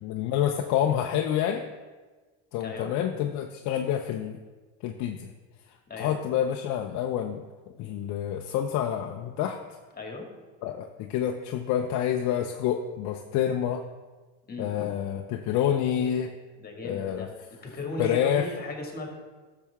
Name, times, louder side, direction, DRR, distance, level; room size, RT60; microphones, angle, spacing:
voice 1, 0.0-1.6 2.5-4.4 4.8-5.3 6.0-7.4 7.7-9.6 10.6-13.8 14.6-16.3 16.8-17.3 18.0-18.5, left 10 dB, 60° left, 4 dB, 0.7 m, -28 dB
voice 2, 2.6-2.9 5.9-6.2 10.0-10.3 14.5-14.7 16.6-17.3 17.6-19.2, left 2 dB, 30° left, 2 dB, 2.1 m, -36 dB
12.0 x 6.9 x 3.5 m, 1.3 s
supercardioid pair, 110°, 32 cm